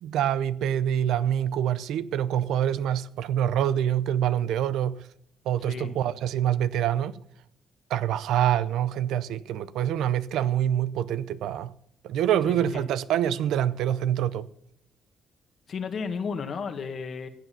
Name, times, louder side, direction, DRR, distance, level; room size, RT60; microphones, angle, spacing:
voice 1, 0.0-5.1 5.5-7.2 7.9-11.7 12.0-14.5, right 10 dB, 85° right, 0.6 m, -26 dB
voice 2, 12.4-12.8 15.7-17.3, left 5 dB, 55° left, 1.6 m, -33 dB
15.5 x 8.1 x 5.8 m
cardioid pair, 90°, 0 cm